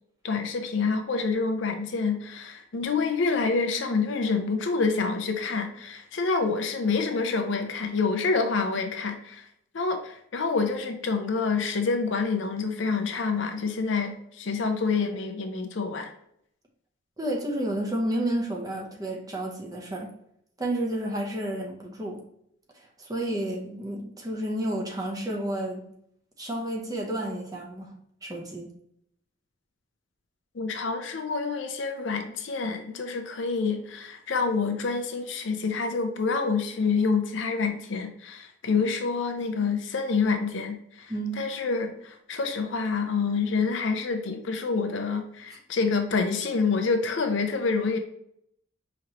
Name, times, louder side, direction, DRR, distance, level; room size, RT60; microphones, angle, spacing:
voice 1, 0.2-9.5 9.7-16.1 30.5-48.0, left 4 dB, 65° left, 6 dB, 0.5 m, -27 dB
voice 2, 17.2-20.1 20.6-22.2 23.0-25.9 26.4-27.9 28.2-28.7 41.1-41.4, right 1 dB, 20° right, -1 dB, 0.7 m, -31 dB
5.1 x 3.0 x 2.9 m, 0.72 s
head